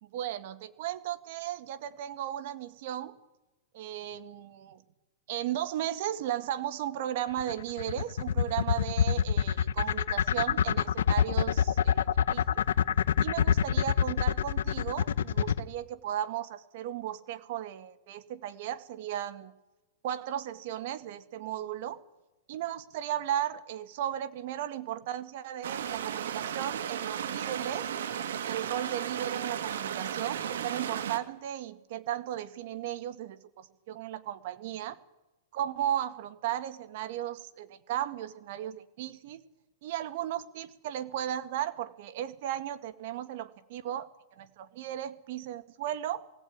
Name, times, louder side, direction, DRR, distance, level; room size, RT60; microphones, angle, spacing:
voice 1, 0.0-3.2 3.7-4.8 5.3-12.6 13.2-19.5 20.0-22.0 22.5-27.9 28.4-35.0 35.5-39.4 39.8-46.2, right 11 dB, 55° right, 11 dB, 1.9 m, -35 dB
sound 1, 7.4-15.6, left 8 dB, 80° left, 0.9 m, -25 dB
sound 2, 25.6-31.2, right 9 dB, 75° right, 2.0 m, -34 dB
19.5 x 17.5 x 9.5 m, 1.0 s
hypercardioid pair, 150°, 0 cm